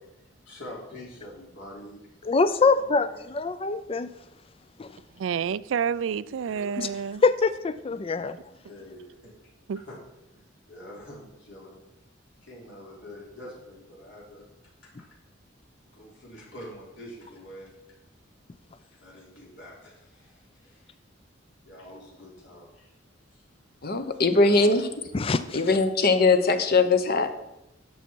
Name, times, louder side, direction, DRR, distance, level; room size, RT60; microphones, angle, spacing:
voice 1, 0.4-2.2 2.7-3.2 6.2-6.7 7.8-8.3 8.7-9.3 9.8-10.0 10.3-11.8 12.4-14.4 15.9-17.7 19.0-20.9 21.7-22.9 23.3-23.4 24.2-24.7, left 1 dB, 70° left, 3.8 m, -46 dB
voice 2, 2.3-4.1 4.8-4.9 6.8-6.9 7.2-8.4 25.1-25.6, left 4 dB, 30° left, 0.4 m, -24 dB
voice 3, 5.2-7.2 9.7-9.8, right 7 dB, 85° right, 0.4 m, -29 dB
voice 4, 23.8-24.9 25.5-27.3, left 3 dB, 55° left, 0.9 m, -21 dB
11.0 x 7.1 x 4.6 m
head